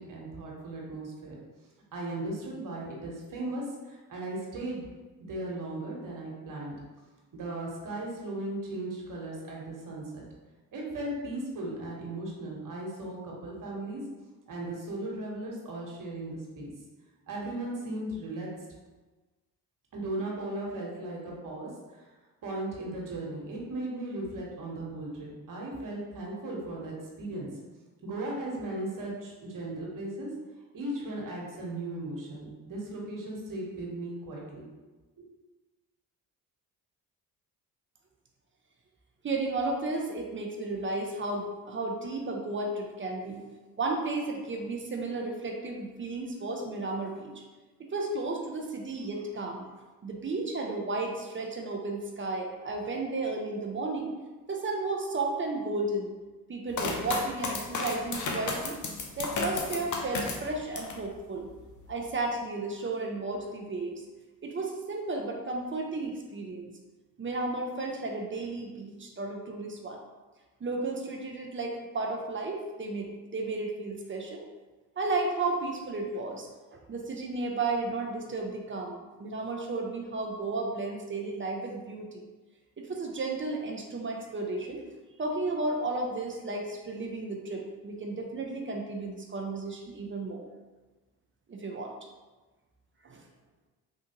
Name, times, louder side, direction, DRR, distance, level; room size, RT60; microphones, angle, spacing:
voice 1, 0.0-1.4 1.9-4.8 5.2-6.7 7.3-10.2 10.7-14.0 14.5-16.7 17.3-18.5 19.9-22.1 22.4-27.5 28.0-30.3 30.7-34.7 35.2-35.3, right 1 dB, 50° right, -3 dB, 1.2 m, -37 dB
voice 2, 39.2-43.5 43.8-47.3 47.8-49.7 50.0-54.2 54.5-56.1 56.5-58.8 59.2-61.5 61.9-63.9 64.4-66.7 67.2-70.0 70.6-74.4 75.0-82.2 82.8-84.8 85.2-90.5 91.5-91.9 93.0-93.2, right 2 dB, 30° right, 1 dB, 0.6 m, -33 dB
sound 1, 56.7-61.0 61.5-62.1, left 4 dB, 45° left, 0.7 m, -33 dB
3.3 x 2.7 x 2.9 m, 1.2 s
hypercardioid pair, 55°, 43 cm